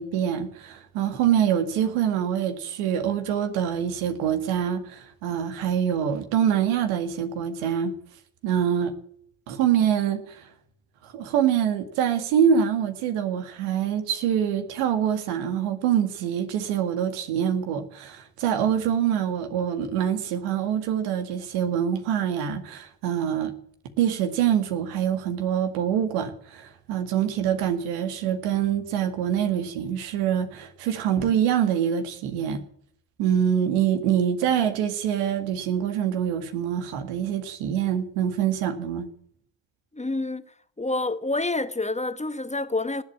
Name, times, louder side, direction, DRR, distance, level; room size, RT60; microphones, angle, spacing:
voice 1, 0.0-7.9 8.4-8.9 9.5-10.5 11.0-23.5 24.0-32.6 33.2-39.1, right 9 dB, 85° right, 2.0 m, -25 dB
voice 2, 39.9-40.4 40.8-43.0, left 2 dB, 15° left, 1.3 m, -27 dB
19.0 x 8.3 x 8.6 m
supercardioid pair, 55°, 48 cm